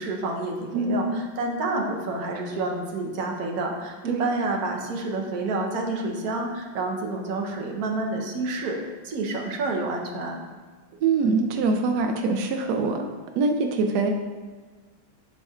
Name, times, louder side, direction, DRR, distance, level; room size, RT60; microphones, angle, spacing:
voice 1, 0.0-8.8 9.0-10.4, right 2 dB, 60° right, 1 dB, 1.1 m, -29 dB
voice 2, 0.7-1.2 4.1-4.3 11.0-13.1 13.4-14.1, right 4 dB, 85° right, 4 dB, 0.9 m, -24 dB
10.5 x 4.2 x 2.4 m, 1.4 s
omnidirectional pair, 2.3 m